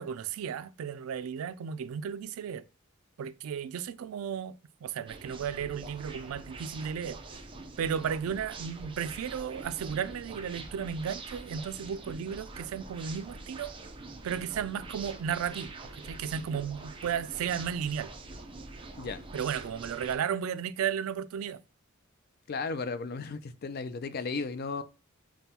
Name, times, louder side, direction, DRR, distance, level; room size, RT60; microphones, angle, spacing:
voice 1, 0.0-2.6 3.2-7.2 7.8-13.7 14.2-18.1 19.3-21.6, right 8 dB, 85° right, 0.3 m, -34 dB
sound 1, 5.1-20.2, right 3 dB, 25° right, 0.5 m, -45 dB
voice 2, 22.5-24.8, left 4 dB, 50° left, 0.4 m, -35 dB
5.3 x 2.3 x 2.8 m
head